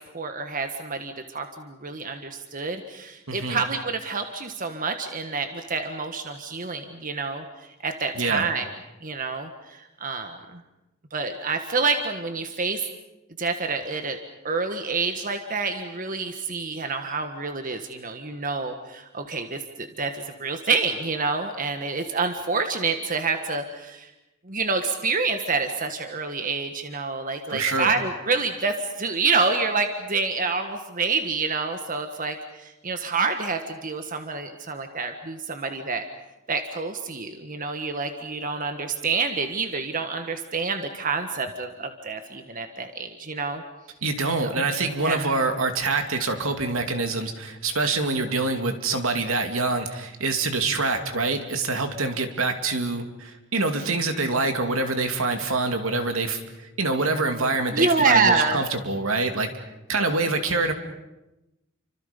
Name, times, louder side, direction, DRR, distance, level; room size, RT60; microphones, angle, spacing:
voice 1, 0.1-7.4 7.8-8.7 9.0-10.6 11.1-12.8 13.4-14.2 14.4-24.1 24.4-36.0 36.5-43.6 44.4-44.6 45.0-45.3 57.7-58.6, right 4 dB, 40° right, 6 dB, 1.5 m, -27 dB
voice 2, 3.3-3.6 8.1-8.5 27.5-27.9 44.0-56.4 56.8-59.5 59.9-60.7, right 3 dB, 75° right, 6 dB, 2.6 m, -25 dB
30.0 x 25.0 x 5.3 m, 0.97 s
head